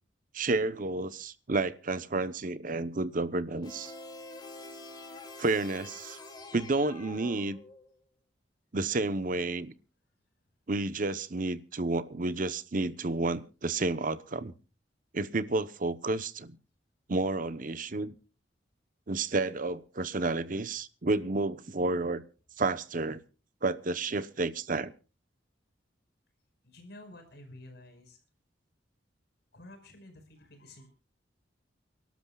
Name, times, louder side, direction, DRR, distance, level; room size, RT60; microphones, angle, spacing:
voice 1, 0.3-3.9 5.4-6.2 6.5-7.6 8.7-9.7 10.7-14.5 15.1-16.5 17.1-18.1 19.1-22.2 22.6-23.2 23.6-24.9, right 3 dB, 45° right, 0.8 m, -31 dB
sound 1, 3.6-8.0, left 2 dB, 25° left, 2.4 m, -46 dB
voice 2, 26.6-28.2 29.5-30.9, left 1 dB, 65° left, 5.1 m, -51 dB
29.5 x 12.5 x 2.3 m
head